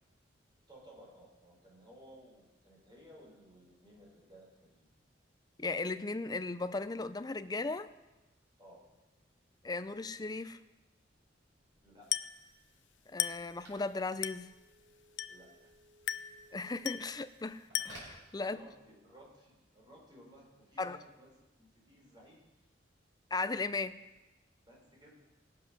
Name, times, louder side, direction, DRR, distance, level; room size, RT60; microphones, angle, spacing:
voice 1, 0.7-4.9 8.6-8.9 11.8-12.3 15.3-15.7 18.4-21.3 21.6-22.5 24.6-25.3, equal, 25° right, 4.7 m, -58 dB
voice 2, 5.6-7.9 9.6-10.6 13.1-14.5 16.5-17.6 17.8-18.6 20.8-21.0 23.3-24.0, left 3 dB, 20° left, 0.5 m, -36 dB
Telephone, 11.2-19.0, right 1 dB, 65° right, 5.4 m, -59 dB
Glass, 12.1-12.5 13.2-13.5 14.2-14.5 15.2-15.5 16.1-16.4 16.8-17.2 17.7-18.2, left 12 dB, 70° left, 0.5 m, -36 dB
19.0 x 7.7 x 6.1 m
head